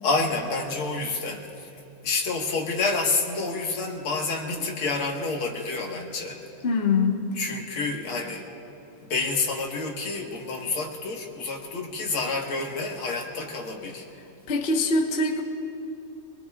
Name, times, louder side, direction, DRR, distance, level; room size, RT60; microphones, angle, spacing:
voice 1, 0.0-1.4 2.0-6.4 7.4-8.5 9.0-14.0, left 3 dB, 75° left, 0 dB, 2.3 m, -28 dB
voice 2, 6.6-7.3 14.5-15.4, left 3 dB, 40° left, 2 dB, 1.0 m, -23 dB
24.5 x 22.0 x 2.4 m, 2.6 s
omnidirectional pair, 2.4 m